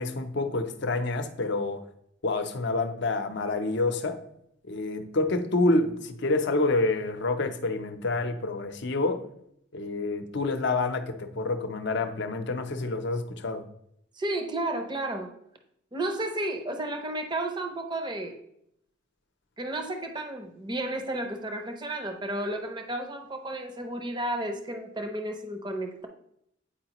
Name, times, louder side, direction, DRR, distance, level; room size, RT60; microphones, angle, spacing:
voice 1, 0.0-1.8 2.2-4.2 4.7-9.2 9.7-13.6, left 2 dB, 60° left, 8 dB, 0.7 m, -28 dB
voice 2, 14.2-15.3 15.9-18.4 19.6-26.1, right 1 dB, 20° right, 5 dB, 0.7 m, -32 dB
8.6 x 4.8 x 3.0 m, 0.75 s
head